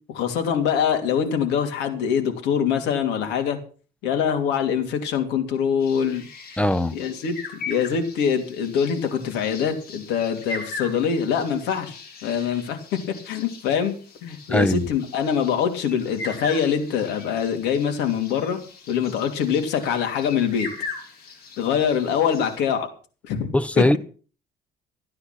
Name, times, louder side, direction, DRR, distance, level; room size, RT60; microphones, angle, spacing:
voice 1, 0.1-3.6 4.0-6.3 6.9-11.9 12.2-13.0 13.2-13.9 14.2-18.6 18.9-20.7 21.6-22.9 23.2-24.0, left 7 dB, 85° left, 2.9 m, -24 dB
sound 1, 5.8-22.6, left 4 dB, 70° left, 6.3 m, -40 dB
voice 2, 6.6-7.0 14.5-14.9 23.5-24.0, left 1 dB, 5° left, 0.7 m, -20 dB
14.5 x 9.7 x 6.0 m
cardioid pair, 110°, 17 cm